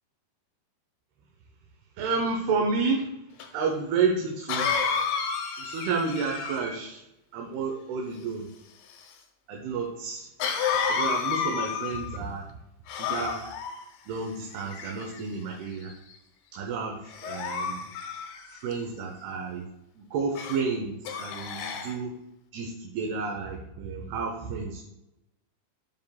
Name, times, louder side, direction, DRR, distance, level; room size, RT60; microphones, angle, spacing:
voice 1, 2.0-3.1 3.5-4.7 5.6-7.0 7.3-8.5 9.5-10.3 10.9-12.5 13.0-13.4 14.1-15.9 16.5-17.9 18.5-19.7 20.0-22.1 22.5-24.8, right 4 dB, 80° right, 1 dB, 2.7 m, -30 dB
Cough, 3.4-3.5 4.5-6.9 10.4-12.2 12.9-13.7 14.5-15.2 15.8-16.1 17.1-18.7 20.3-20.6 21.0-21.9, left 6 dB, 75° left, 2.3 m, -30 dB
12.0 x 5.3 x 2.3 m, 0.89 s
omnidirectional pair, 4.7 m